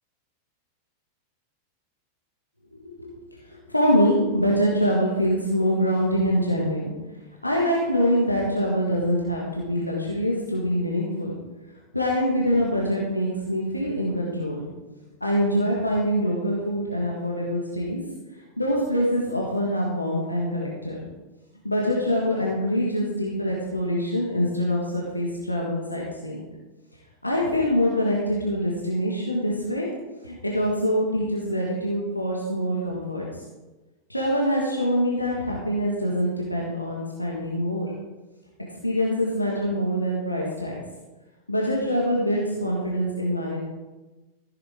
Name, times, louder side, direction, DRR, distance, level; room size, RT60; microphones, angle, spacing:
voice 1, 2.7-3.1 3.5-6.9 7.4-11.3 11.9-14.6 15.2-18.0 18.6-21.0 21.6-26.4 27.2-29.9 30.2-33.4 34.1-37.9 38.8-40.7 41.5-43.6, equal, 85° left, -3 dB, 1.8 m, -24 dB
14.5 x 7.9 x 3.8 m, 1.2 s
figure-of-eight pair, 90°, 0 cm